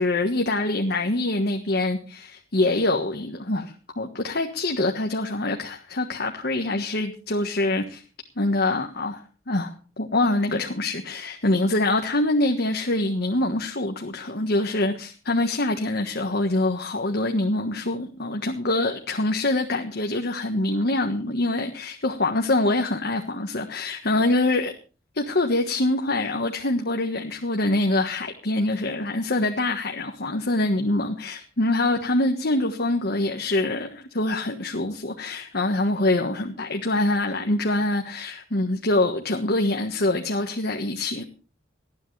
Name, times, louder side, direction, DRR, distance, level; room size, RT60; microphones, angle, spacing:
voice 1, 0.0-8.0 8.4-24.7 25.1-41.2, left 2 dB, 55° left, 1.5 m, -25 dB
19.5 x 13.0 x 3.3 m
head